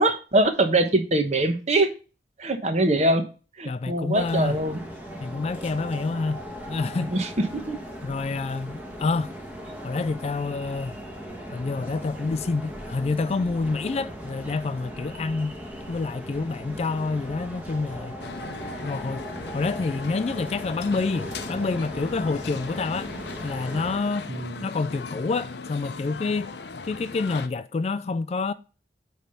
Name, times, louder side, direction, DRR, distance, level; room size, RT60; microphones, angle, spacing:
voice 1, 0.0-1.9 2.4-3.2 3.6-4.8 7.1-7.8 24.3-24.6, right 2 dB, 40° right, 1.1 m, -23 dB
voice 2, 3.7-4.6 5.2-6.4 6.7-7.1 8.0-9.3 9.8-11.0 11.5-15.5 15.9-18.2 18.8-23.1 23.4-24.3 24.6-26.5 26.8-28.5, left 3 dB, 35° left, 0.3 m, -28 dB
sound 1, 4.1-24.0, equal, 10° right, 1.2 m, -38 dB
sound 2, 18.2-27.5, left 4 dB, 65° left, 0.7 m, -38 dB
9.1 x 3.4 x 5.6 m
head